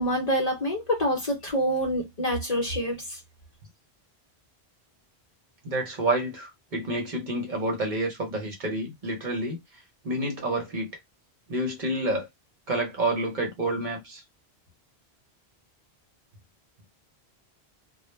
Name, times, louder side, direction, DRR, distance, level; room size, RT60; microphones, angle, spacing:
voice 1, 0.0-3.2, equal, 40° left, 0.8 m, -26 dB
voice 2, 5.6-9.6 10.0-10.9 11.5-12.3 12.7-14.2, right 1 dB, 50° right, 0.9 m, -28 dB
2.2 x 2.0 x 3.1 m
omnidirectional pair, 1.1 m